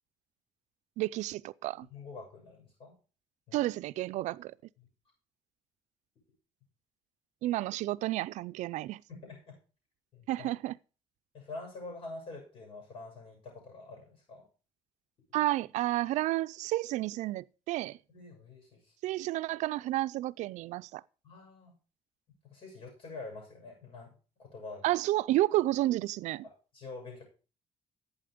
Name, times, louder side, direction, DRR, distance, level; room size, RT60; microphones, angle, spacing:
voice 1, 1.0-1.9 3.5-4.5 7.4-9.0 10.3-10.7 15.3-18.0 19.0-21.0 24.8-26.4, right 16 dB, 80° right, 0.4 m, -31 dB
voice 2, 1.9-3.0 3.5-3.6 9.1-9.6 10.1-10.5 11.3-14.5 18.1-18.9 21.2-21.8 22.5-24.1 24.4-24.9 26.4-27.2, left 3 dB, 50° left, 7.2 m, -46 dB
11.5 x 8.3 x 5.0 m
cardioid pair, 150°, 12 cm